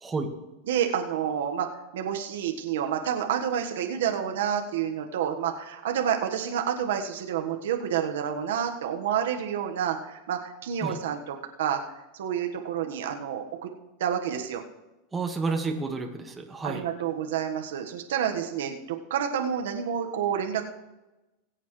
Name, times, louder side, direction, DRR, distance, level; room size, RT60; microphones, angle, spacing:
voice 1, 0.0-0.3 10.8-11.0 15.1-16.8, right 3 dB, 15° right, 3 dB, 1.7 m, -30 dB
voice 2, 0.7-1.7 1.9-11.8 12.1-13.7 14.0-14.6 16.6-20.6, right 8 dB, 85° right, 3 dB, 1.5 m, -29 dB
21.5 x 8.3 x 3.3 m, 1.0 s
supercardioid pair, 130°, 0 cm